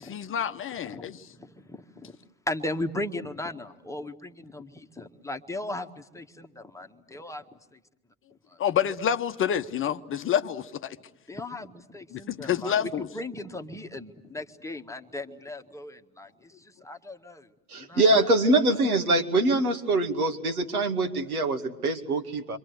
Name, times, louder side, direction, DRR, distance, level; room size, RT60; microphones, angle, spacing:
voice 1, 0.2-1.2 8.6-11.0 12.1-13.1, left 9 dB, 30° left, 9 dB, 1.0 m, -28 dB
voice 2, 0.7-2.2 2.5-7.8 8.5-8.6 11.3-18.3 18.7-18.8, left 2 dB, 5° left, 5 dB, 1.6 m, -37 dB
voice 3, 17.7-22.6, right 2 dB, 80° right, 5 dB, 2.4 m, -24 dB
29.5 x 25.0 x 8.1 m, 0.94 s
figure-of-eight pair, 75°, 43 cm